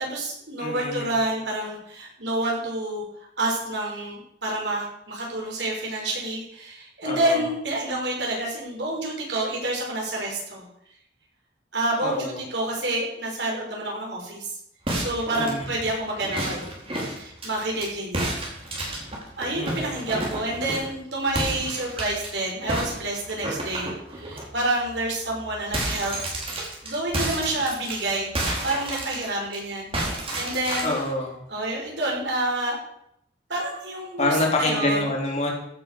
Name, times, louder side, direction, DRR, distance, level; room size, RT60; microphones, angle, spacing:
voice 1, 0.0-3.0 3.4-10.7 11.7-14.6 14.9-16.6 17.2-18.4 18.7-19.0 19.4-26.1 26.5-30.9 31.5-32.8 33.5-35.0, right 2 dB, 65° right, -1 dB, 5.4 m, -28 dB
voice 2, 0.6-1.1 7.0-7.5 12.0-12.4 15.4-15.7 19.5-19.9 30.8-31.4 34.2-35.5, left 2 dB, 35° left, -1 dB, 3.5 m, -26 dB
sound 1, 14.9-17.9 18.1-21.0 21.3-22.3 22.7-24.4 24.9-25.0 25.3-29.6 29.9-31.1, right 1 dB, 30° right, 3.8 m, -31 dB
15.5 x 7.7 x 6.6 m, 0.73 s
head